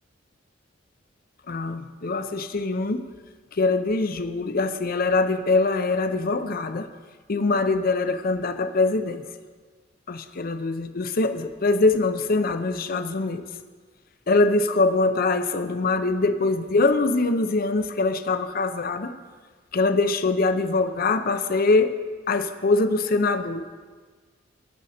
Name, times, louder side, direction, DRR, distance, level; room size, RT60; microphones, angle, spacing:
voice 1, 1.5-3.1 3.5-6.9 7.3-9.2 10.1-13.4 14.3-19.1 19.7-22.0 22.3-23.7, left 3 dB, 50° left, 9 dB, 0.6 m, -23 dB
18.0 x 6.2 x 4.3 m, 1.5 s
head